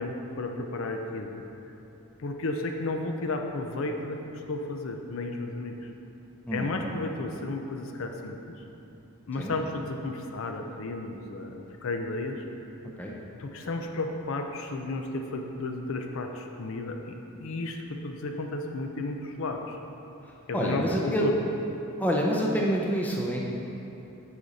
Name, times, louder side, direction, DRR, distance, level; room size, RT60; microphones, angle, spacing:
voice 1, 0.0-1.4 2.2-4.2 4.5-5.7 6.5-8.4 9.3-12.4 13.4-19.8 20.5-21.3, left 2 dB, 65° left, 4 dB, 0.5 m, -33 dB
voice 2, 20.5-21.3 22.0-23.4, equal, 10° left, -2 dB, 0.5 m, -27 dB
6.9 x 5.0 x 4.0 m, 2.9 s
head